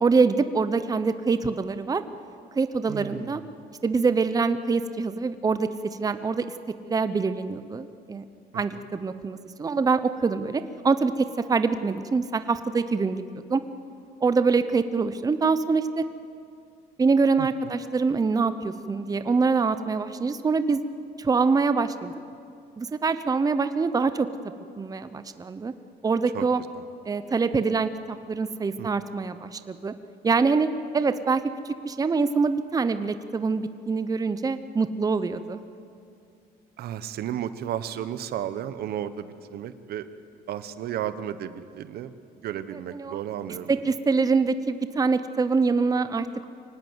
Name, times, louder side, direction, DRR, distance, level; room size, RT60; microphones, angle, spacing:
voice 1, 0.0-2.0 2.6-3.4 3.8-5.7 6.0-6.4 6.8-8.2 8.5-13.2 13.5-13.6 14.2-16.0 17.0-20.8 21.2-22.1 22.8-24.3 24.8-25.7 26.0-26.6 27.1-29.9 30.2-30.7 30.9-31.4 31.8-35.6 42.9-43.2 43.7-46.5, right 4 dB, 20° right, 11 dB, 0.8 m, -24 dB
voice 2, 2.9-3.5 8.5-8.8 17.4-17.7 26.3-26.5 26.7-26.8 28.8-28.9 36.8-40.1 40.5-42.1 42.4-43.7, right 10 dB, 70° right, 12 dB, 1.1 m, -33 dB
24.0 x 18.5 x 8.1 m, 2.5 s
cardioid pair, 110°, 17 cm